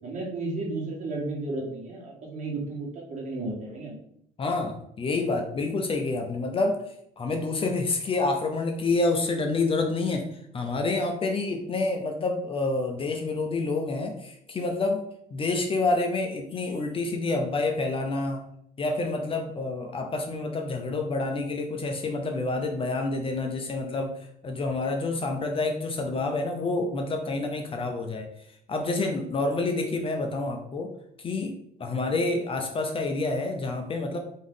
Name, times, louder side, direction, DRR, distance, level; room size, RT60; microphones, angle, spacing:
voice 1, 0.0-4.0, right 2 dB, 45° right, -3 dB, 1.7 m, -33 dB
voice 2, 4.4-6.8 7.2-10.3 10.5-15.0 15.3-18.4 18.8-24.2 24.4-28.3 28.7-30.9 31.2-34.2, left 3 dB, 30° left, 4 dB, 0.6 m, -28 dB
3.6 x 3.1 x 3.9 m, 0.71 s
cardioid pair, 110°, 17 cm